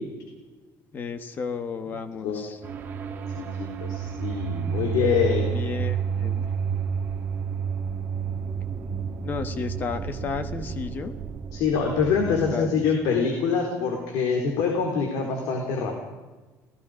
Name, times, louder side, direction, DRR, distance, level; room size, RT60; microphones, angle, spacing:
voice 1, 0.9-2.6 5.5-6.5 9.2-11.1 12.5-12.7, left 5 dB, 30° left, 10 dB, 1.5 m, -33 dB
sound 1, 2.6-12.5, right 7 dB, 30° right, 2.0 m, -30 dB
voice 2, 3.4-5.5 11.5-16.0, left 5 dB, 80° left, 2 dB, 4.1 m, -25 dB
29.0 x 18.5 x 5.2 m, 1.2 s
cardioid pair, 180°, 7 cm